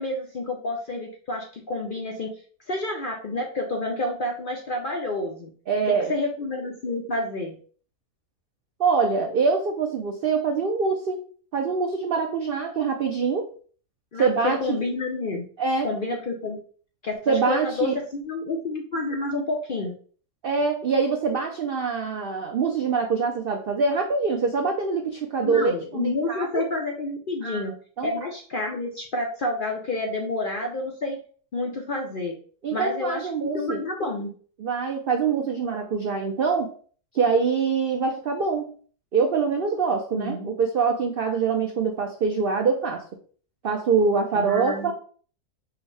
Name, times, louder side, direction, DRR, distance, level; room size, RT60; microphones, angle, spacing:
voice 1, 0.0-2.3 2.7-5.5 5.9-7.6 14.1-15.5 15.8-16.6 17.0-19.9 25.4-27.8 28.0-31.2 31.5-32.4 32.7-34.3 40.1-40.5 44.3-44.9, left 2 dB, 55° left, 0 dB, 0.6 m, -29 dB
voice 2, 5.7-6.1 8.8-11.2 11.5-13.5 14.2-14.8 15.6-15.9 17.3-17.9 20.4-26.6 27.4-27.6 28.0-28.1 32.6-33.8 34.6-36.7 37.1-38.7 39.1-43.0 43.6-44.9, right 5 dB, 80° right, 3 dB, 0.5 m, -24 dB
4.8 x 2.1 x 4.6 m, 0.43 s
omnidirectional pair, 1.6 m